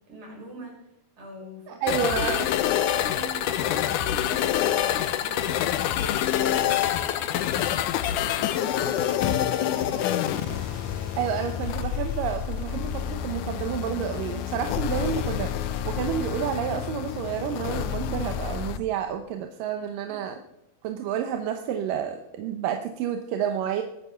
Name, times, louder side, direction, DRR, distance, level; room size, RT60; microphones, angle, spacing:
voice 1, 0.1-0.9 1.2-10.4 19.8-20.2, right 1 dB, 50° right, -2 dB, 7.3 m, -45 dB
voice 2, 1.7-2.5 11.2-15.5 15.9-20.3 20.8-23.8, right 8 dB, 75° right, 6 dB, 2.4 m, -29 dB
sound 1, 1.9-18.8, left 11 dB, 75° left, 1.9 m, -27 dB
sound 2, 2.6-16.5, equal, 10° right, 1.6 m, -48 dB
22.0 x 9.6 x 5.8 m, 0.90 s
omnidirectional pair, 4.3 m